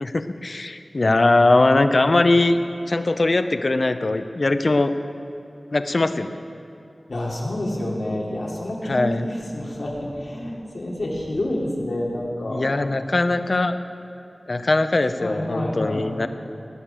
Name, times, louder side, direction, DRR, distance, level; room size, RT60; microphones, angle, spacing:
voice 1, 0.0-2.6 2.9-4.9 5.7-6.4 8.9-9.2 12.5-13.8 14.5-16.3, left 2 dB, 60° left, 9 dB, 0.7 m, -20 dB
voice 2, 7.1-12.7 15.2-16.1, left 1 dB, 75° left, -3 dB, 3.0 m, -28 dB
19.0 x 6.6 x 9.1 m, 2.7 s
wide cardioid pair, 70°, 0 cm